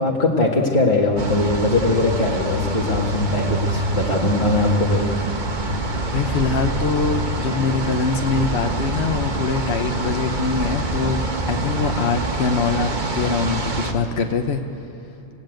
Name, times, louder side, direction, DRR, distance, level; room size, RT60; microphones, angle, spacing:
voice 1, 0.0-5.1, left 2 dB, 35° left, -2 dB, 1.9 m, -20 dB
sound 1, 1.2-13.9, right 1 dB, 35° right, 1.5 m, -25 dB
voice 2, 6.1-11.2 11.5-14.6, left 4 dB, 55° left, 5 dB, 1.2 m, -23 dB
30.0 x 16.0 x 9.1 m, 2.9 s
omnidirectional pair, 1.3 m